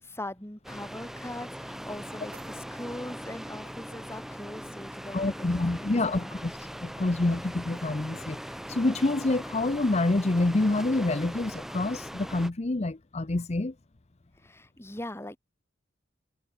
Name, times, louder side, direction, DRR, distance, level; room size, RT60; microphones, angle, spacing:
voice 1, 0.0-6.3 14.4-15.4, left 1 dB, 15° left, 2.2 m, -41 dB
sound 1, 0.6-12.5, equal, ahead, 1.1 m, -40 dB
sound 2, 1.6-3.6, right 6 dB, 55° right, 6.5 m, -59 dB
voice 2, 5.1-13.7, left 2 dB, 35° left, 0.7 m, -27 dB
head